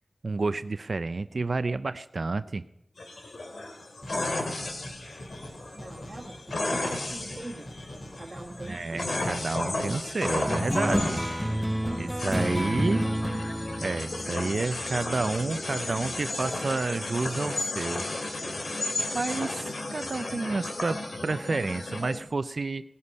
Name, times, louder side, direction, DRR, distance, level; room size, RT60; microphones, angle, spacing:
voice 1, 0.2-2.6 8.6-11.2 12.0-13.1 13.8-18.0 19.1-19.7 19.9-22.8, right 3 dB, 65° right, 13 dB, 0.5 m, -30 dB
sound 1, 3.0-22.2, left 2 dB, 85° left, 2.4 m, -34 dB
sound 2, 4.0-11.5, equal, 45° left, 4.8 m, -45 dB
voice 2, 5.7-7.7 8.2-9.0 11.5-12.2, right 2 dB, 40° right, -3 dB, 1.6 m, -42 dB
sound 3, 10.5-15.4, equal, ahead, 1.1 m, -30 dB
18.5 x 9.8 x 5.4 m, 0.87 s
wide cardioid pair, 85°, 0 cm